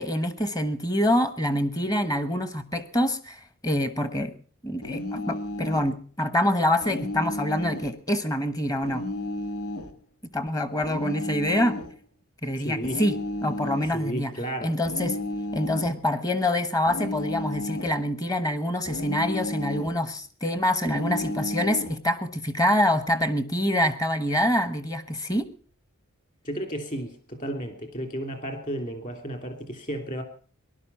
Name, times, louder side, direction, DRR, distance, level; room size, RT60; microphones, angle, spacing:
voice 1, 0.0-4.3 4.6-9.0 10.3-11.8 12.4-14.3 14.6-15.2 15.5-25.5, left 1 dB, 15° left, 13 dB, 1.1 m, -26 dB
sound 1, 4.8-5.9 6.8-7.9 8.8-10.0 10.8-11.9 12.8-14.0 14.8-16.0 16.9-18.0 18.9-20.0 20.9-22.0, left 1 dB, 90° left, 1.7 m, -32 dB
voice 2, 12.6-13.0 13.9-14.8 26.4-30.2, right 1 dB, 35° left, 6 dB, 3.0 m, -33 dB
18.5 x 12.0 x 5.6 m, 0.41 s
head